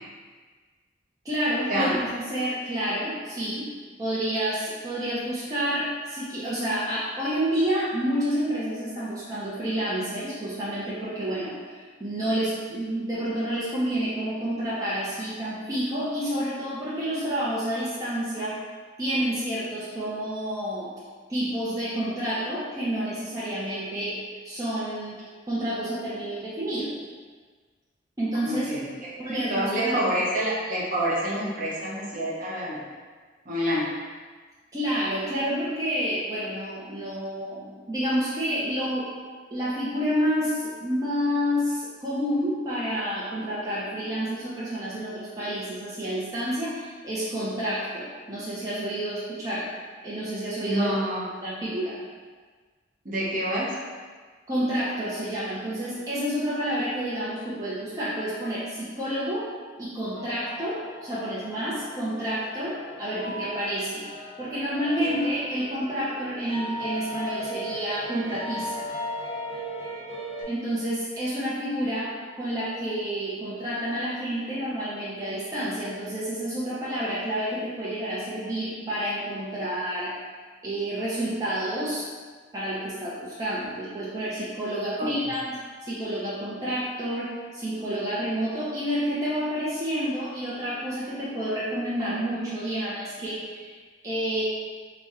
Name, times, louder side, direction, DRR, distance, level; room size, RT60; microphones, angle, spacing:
voice 1, 1.2-18.6 19.0-20.9 21.3-24.2 24.4-25.2 25.5-27.0 28.2-28.7 29.2-30.0 34.7-39.1 39.5-49.7 50.0-51.0 51.4-52.0 54.5-59.5 59.8-64.1 64.4-68.9 70.4-80.1 80.6-82.1 82.5-85.5 85.8-93.8 94.0-94.4, equal, 20° right, -9 dB, 0.6 m, -29 dB
voice 2, 28.5-32.8 33.5-34.0 50.7-51.3 53.0-53.8 85.0-85.1, equal, 45° right, -6 dB, 0.8 m, -27 dB
sound 1, 60.1-70.4, equal, 25° left, 1.3 m, -37 dB
3.6 x 2.1 x 4.1 m, 1.5 s
head